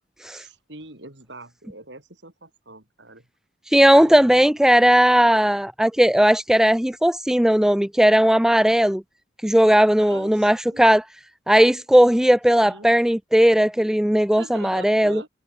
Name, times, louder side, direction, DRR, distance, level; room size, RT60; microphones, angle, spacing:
voice 1, 0.3-3.3 3.9-5.0 10.0-10.9 12.6-12.9 14.3-15.3, right 2 dB, 65° right, 5.2 m, -43 dB
voice 2, 3.7-9.0 9.4-11.0 11.5-15.2, equal, 5° right, 0.3 m, -17 dB
head